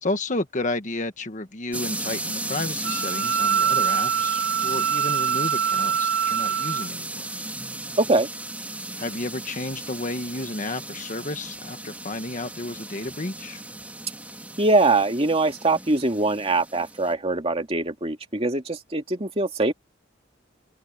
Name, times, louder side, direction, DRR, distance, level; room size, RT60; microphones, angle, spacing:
voice 1, 0.0-7.3 9.0-13.6, left 2 dB, 40° left, 1.4 m, -31 dB
sound 1, 1.7-17.1, right 2 dB, 10° right, 2.9 m, -35 dB
Wind instrument woodwind instrument, 2.8-6.9, right 8 dB, 75° right, 0.9 m, -24 dB
voice 2, 8.0-8.3 14.6-19.7, right 2 dB, 30° right, 2.2 m, -22 dB
open air
head